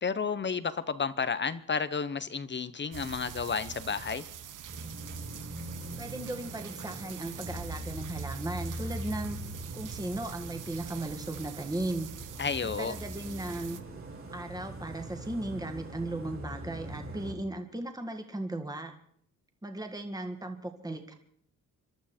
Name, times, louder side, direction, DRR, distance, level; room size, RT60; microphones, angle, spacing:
voice 1, 0.0-4.2 12.4-12.9, left 5 dB, 35° left, 15 dB, 0.9 m, -31 dB
sound 1, 2.9-13.8, right 9 dB, 70° right, 1.1 m, -44 dB
sound 2, 4.7-17.3, right 1 dB, 40° right, 4.1 m, -42 dB
voice 2, 6.0-9.4 9.7-12.1 12.6-13.8 14.3-18.9 19.6-21.1, right 2 dB, 10° right, 5 dB, 1.9 m, -36 dB
26.5 x 12.0 x 4.4 m, 0.63 s
cardioid pair, 105°, 32 cm